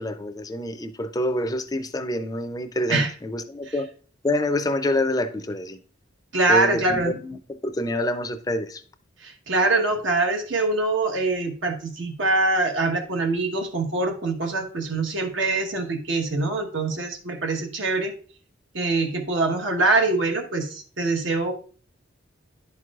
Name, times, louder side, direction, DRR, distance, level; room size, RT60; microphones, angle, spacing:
voice 1, 0.0-3.9 4.2-5.8 6.5-8.8, left 1 dB, 20° left, 0.4 m, -27 dB
voice 2, 6.3-7.1 9.2-18.2 18.7-21.5, right 2 dB, 75° right, 1.2 m, -24 dB
11.0 x 4.6 x 2.4 m
head